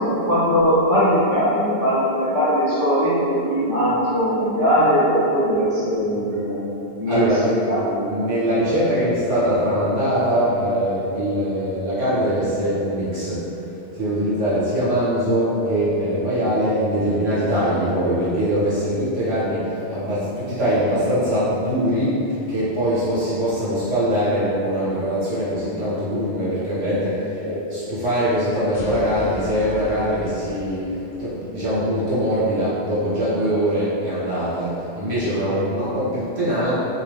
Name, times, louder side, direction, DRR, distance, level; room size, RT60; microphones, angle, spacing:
voice 1, 0.0-6.7 7.0-7.2 7.7-8.1 27.4-27.8 35.5-35.7, equal, 20° right, -12 dB, 0.7 m, -20 dB
voice 2, 7.1-7.6 8.1-36.7, equal, 60° right, -12 dB, 1.3 m, -22 dB
sound 1, 28.7-31.3, left 1 dB, 60° left, 0.6 m, -37 dB
2.6 x 2.4 x 3.3 m, 2.9 s
omnidirectional pair, 1.2 m